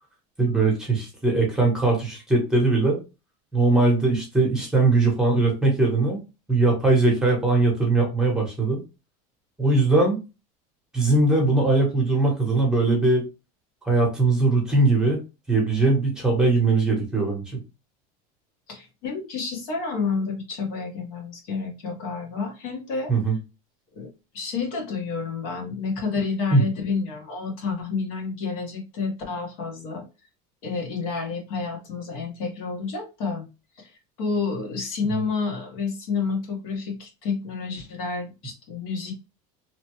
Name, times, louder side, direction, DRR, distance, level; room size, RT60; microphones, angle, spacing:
voice 1, 0.4-3.0 3.5-6.2 6.5-8.8 9.6-10.2 10.9-13.2 13.8-15.2 15.5-17.6 23.1-23.4 26.5-26.6 35.1-35.2, right 3 dB, 5° right, -1 dB, 0.9 m, -20 dB
voice 2, 18.7-23.1 23.9-24.1 24.3-30.0 30.6-33.5 33.8-33.9 34.2-39.1, left 4 dB, 80° left, 1 dB, 1.2 m, -29 dB
2.9 x 2.2 x 3.0 m, 0.28 s
cardioid pair, 170°, 18 cm